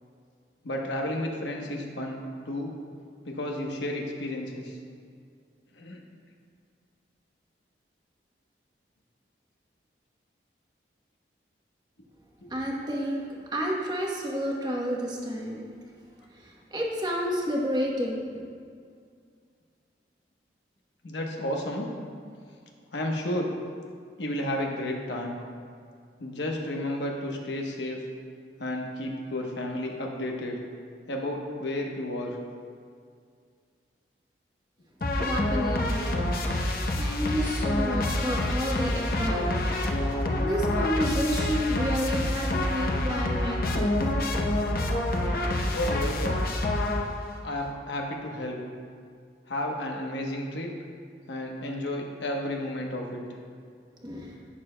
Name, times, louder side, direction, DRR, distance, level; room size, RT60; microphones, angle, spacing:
voice 1, 0.6-2.2 2.4-2.8 3.2-4.7 5.8-6.0 12.4-12.5 21.0-21.9 22.9-23.5 24.2-25.4 26.2-28.0 28.6-30.6 31.1-32.4 45.6-46.4 47.4-48.6 49.5-50.7 51.3-53.2, left 1 dB, 90° left, 0 dB, 1.0 m, -32 dB
voice 2, 12.5-15.7 16.3-18.4 35.2-36.2 36.6-39.6 40.4-44.0 54.0-54.3, equal, 25° right, -2 dB, 1.0 m, -30 dB
sound 1, 35.0-47.4, left 1 dB, 55° left, 0.7 m, -27 dB
11.0 x 8.5 x 2.2 m, 2.2 s
head